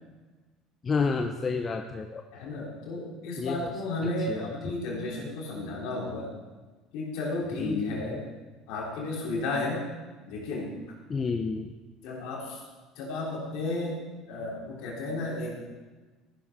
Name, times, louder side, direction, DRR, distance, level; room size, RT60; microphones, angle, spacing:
voice 1, 0.8-2.2 3.4-3.7 4.3-4.7 7.6-7.9 11.1-11.7, left 4 dB, 35° left, 6 dB, 0.8 m, -30 dB
voice 2, 2.3-6.3 6.9-8.2 8.7-9.9 10.3-11.0 12.0-12.6 13.0-15.6, left 2 dB, 65° left, -3 dB, 3.5 m, -33 dB
14.5 x 11.0 x 3.7 m, 1.3 s
hypercardioid pair, 65°, 0 cm